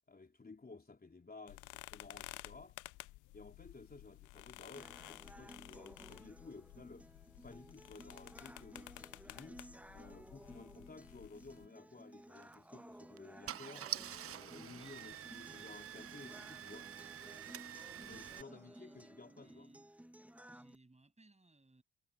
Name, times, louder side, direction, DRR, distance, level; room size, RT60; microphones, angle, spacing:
voice 1, 0.1-2.8 3.3-7.1 7.4-9.6 9.9-13.9 14.2-16.9 18.0-19.7, left 3 dB, 30° left, 3.4 m, -55 dB
sound 1, 1.5-11.7, left 19 dB, 75° left, 0.6 m, -54 dB
sound 2, 4.7-20.8, right 1 dB, 5° right, 1.5 m, -57 dB
Car / Engine starting, 12.4-12.6 13.2-13.3 13.5-18.4, right 10 dB, 50° right, 0.7 m, -46 dB
voice 2, 14.5-16.2 17.9-19.9 20.5-21.8, right 2 dB, 20° right, 7.6 m, -64 dB
hypercardioid pair, 45°, 30 cm